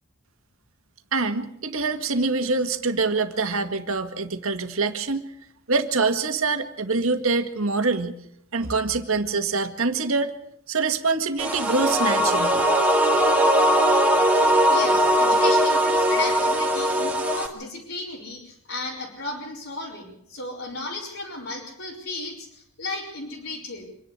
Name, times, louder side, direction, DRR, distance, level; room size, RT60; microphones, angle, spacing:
voice 1, 1.1-5.3 5.7-8.2 8.5-10.4 10.7-12.6, right 3 dB, 75° right, 7 dB, 1.9 m, -25 dB
sound 1, 11.4-17.5, right 1 dB, 5° right, 2.3 m, -20 dB
voice 2, 14.6-23.9, left 2 dB, 65° left, -4 dB, 4.4 m, -34 dB
26.5 x 10.5 x 9.6 m, 0.74 s
head